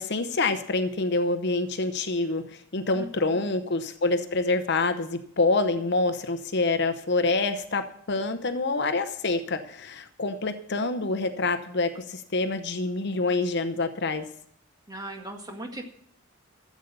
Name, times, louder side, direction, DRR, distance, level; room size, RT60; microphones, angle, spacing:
voice 1, 0.0-14.3, left 3 dB, 50° left, 9 dB, 0.8 m, -26 dB
voice 2, 2.9-3.4 14.9-15.8, right 1 dB, 15° right, 2 dB, 1.8 m, -38 dB
13.5 x 8.3 x 6.7 m, 0.67 s
head